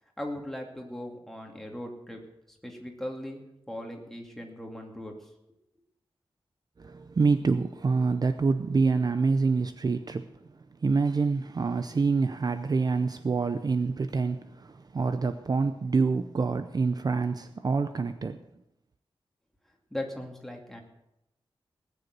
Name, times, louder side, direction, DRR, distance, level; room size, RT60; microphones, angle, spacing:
voice 1, 0.2-2.2 2.6-5.3 19.9-20.8, left 1 dB, 5° left, 1 dB, 2.5 m, -38 dB
voice 2, 6.8-18.4, right 4 dB, 40° right, 10 dB, 0.6 m, -27 dB
19.0 x 6.8 x 8.2 m, 0.85 s
wide cardioid pair, 140°, 10 cm